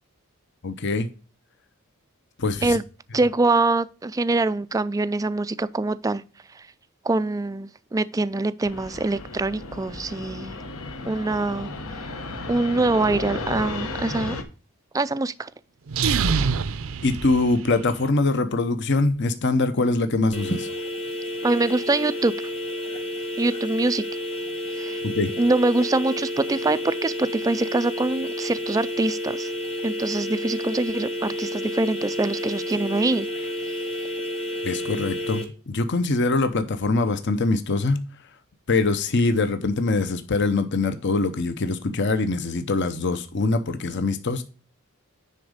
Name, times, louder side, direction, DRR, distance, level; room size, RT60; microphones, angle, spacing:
voice 1, 0.6-1.1 2.4-2.8 17.0-20.7 25.0-25.3 34.6-38.0 38.7-44.4, left 3 dB, 55° left, 0.8 m, -23 dB
voice 2, 3.1-6.2 7.0-10.6 11.1-11.7 12.5-14.4 14.9-15.5 21.4-22.3 23.4-24.0 24.8-25.0 25.4-29.5 29.8-33.3, right 2 dB, 15° right, 0.3 m, -24 dB
Fixed-wing aircraft airplane, 8.6-14.4, left 2 dB, 75° left, 1.2 m, -34 dB
sound 1, 15.9-18.0, right 5 dB, 65° right, 0.5 m, -25 dB
sound 2, 20.3-35.4, left 1 dB, 25° left, 1.4 m, -30 dB
10.0 x 4.0 x 5.0 m
head